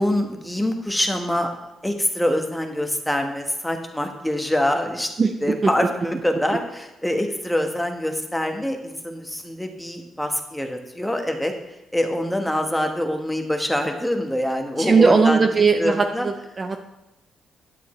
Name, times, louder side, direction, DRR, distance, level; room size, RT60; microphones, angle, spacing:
voice 1, 0.0-5.1 5.4-11.5 11.9-15.4 15.8-16.3, left 1 dB, 5° left, 3 dB, 1.2 m, -25 dB
voice 2, 5.2-5.7 14.8-16.8, right 4 dB, 35° right, 6 dB, 0.6 m, -19 dB
9.4 x 8.2 x 3.2 m, 0.94 s
cardioid pair, 90°, 0 cm